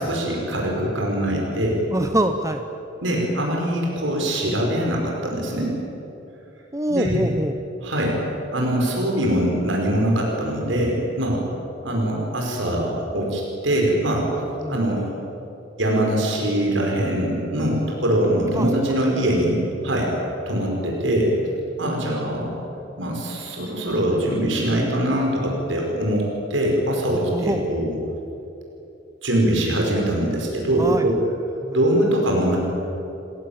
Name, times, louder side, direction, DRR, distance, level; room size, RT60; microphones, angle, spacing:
voice 1, 0.0-1.8 3.0-5.7 6.9-7.2 7.8-8.2 8.5-11.4 11.8-14.3 14.7-15.0 15.8-20.1 20.5-21.3 21.8-22.6 23.0-28.0 29.2-31.2 31.7-32.6, right 1 dB, 85° right, -1 dB, 5.6 m, -22 dB
voice 2, 1.9-2.6 6.7-7.6 14.6-14.8 18.5-18.7 19.0-19.1 22.0-22.2 27.3-27.7 30.7-31.1 31.6-31.8, right 1 dB, 15° right, 7 dB, 1.0 m, -24 dB
28.5 x 18.0 x 9.0 m, 2.9 s
head